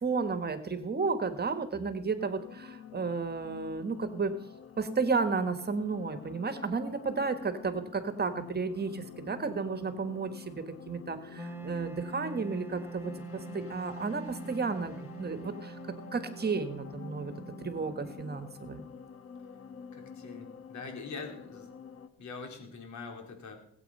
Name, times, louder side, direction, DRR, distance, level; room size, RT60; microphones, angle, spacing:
voice 1, 0.0-4.3 4.8-15.8 16.1-17.3 17.6-18.8, right 4 dB, 35° right, 9 dB, 1.6 m, -33 dB
sound 1, 2.2-22.1, left 7 dB, 45° left, 1.2 m, -48 dB
Wind instrument woodwind instrument, 11.4-18.3, right 4 dB, 10° right, 1.2 m, -45 dB
voice 2, 19.9-21.7 22.2-23.6, left 4 dB, 70° left, 3 dB, 3.7 m, -43 dB
19.5 x 8.3 x 5.5 m, 0.68 s
cardioid pair, 90°, 30 cm